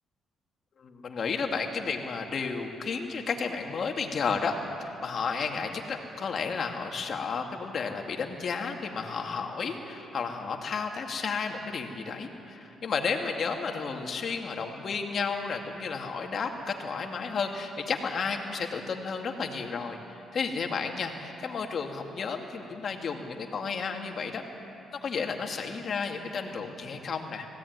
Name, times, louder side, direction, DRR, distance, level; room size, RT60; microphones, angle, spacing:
voice 1, 0.7-24.4 25.0-27.5, left 5 dB, 50° left, 3 dB, 2.3 m, -32 dB
19.0 x 16.5 x 9.5 m, 2.9 s
cardioid pair, 90°, 0 cm